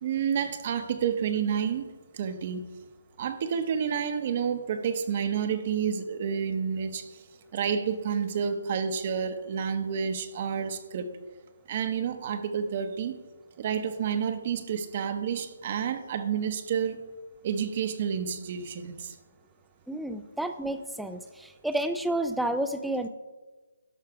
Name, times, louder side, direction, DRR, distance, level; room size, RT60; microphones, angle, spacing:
voice 1, 0.0-1.9 2.1-2.7 3.2-7.1 7.5-11.1 11.7-13.1 13.6-17.0 17.4-19.1, right 7 dB, 35° right, 8 dB, 0.8 m, -29 dB
voice 2, 19.9-23.1, right 1 dB, ahead, 8 dB, 0.4 m, -30 dB
12.0 x 5.7 x 4.7 m, 1.3 s
hypercardioid pair, 160°, 0 cm